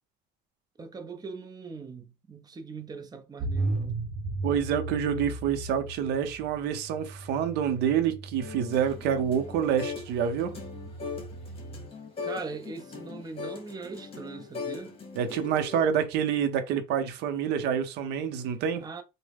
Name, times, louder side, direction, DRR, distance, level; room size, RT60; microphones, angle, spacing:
voice 1, 0.8-4.0 12.2-15.0 18.8-19.0, right 4 dB, 25° right, 0.6 m, -41 dB
sound 1, 3.4-11.9, right 2 dB, 50° right, 0.8 m, -36 dB
voice 2, 4.4-10.5 15.2-18.8, right 8 dB, 90° right, 0.6 m, -27 dB
sound 2, 8.4-10.1 10.4-15.8, left 5 dB, 35° left, 1.1 m, -40 dB
3.5 x 2.1 x 3.5 m
cardioid pair, 110°, 17 cm